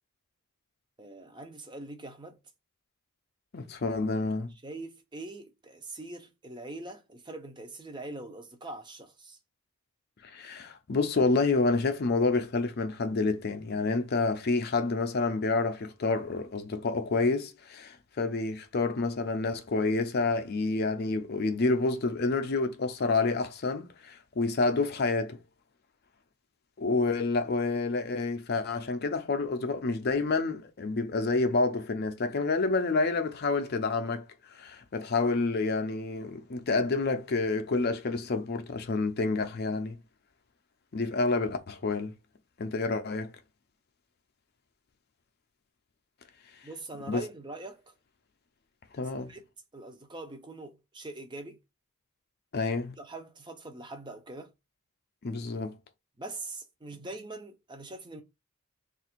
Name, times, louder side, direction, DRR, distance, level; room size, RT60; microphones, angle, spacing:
voice 1, 1.0-2.4 4.6-9.4 46.6-47.9 49.3-49.4 49.7-51.6 53.0-54.5 56.2-58.2, right 2 dB, 20° right, 0.6 m, -43 dB
voice 2, 3.5-4.5 10.2-25.4 26.8-40.0 40.9-42.1 42.6-43.3 47.1-47.2 49.0-49.3 52.5-52.9 55.2-55.8, left 3 dB, 45° left, 0.5 m, -28 dB
3.4 x 2.5 x 4.3 m
head